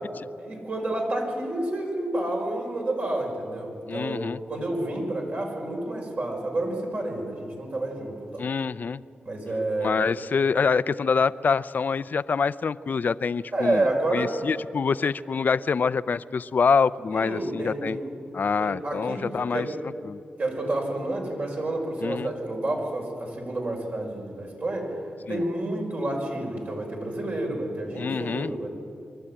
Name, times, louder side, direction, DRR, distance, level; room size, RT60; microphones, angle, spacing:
voice 1, 0.4-8.4 9.2-10.0 13.5-14.3 17.1-18.1 18.6-19.7 20.4-24.9 25.3-28.7, right 1 dB, 55° right, 0 dB, 5.5 m, -29 dB
voice 2, 3.9-4.4 8.4-9.0 9.8-18.0 18.3-19.7 20.0-20.2 22.0-22.3 25.3-25.4 28.0-28.5, left 5 dB, 60° left, 16 dB, 0.5 m, -25 dB
24.0 x 12.5 x 8.9 m, 2.5 s
cardioid pair, 60°, 3 cm